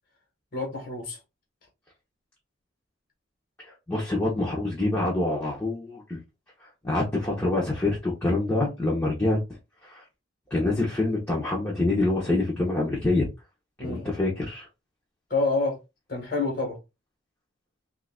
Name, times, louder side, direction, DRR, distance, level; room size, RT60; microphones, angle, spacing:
voice 1, 0.5-1.2 13.8-14.1 15.3-15.8 16.1-16.8, left 3 dB, 45° left, 1.3 m, -27 dB
voice 2, 3.9-6.2 6.8-9.4 9.8-10.0 10.5-13.3 13.8-14.7, left 2 dB, 10° left, 0.8 m, -26 dB
3.2 x 2.5 x 3.4 m
head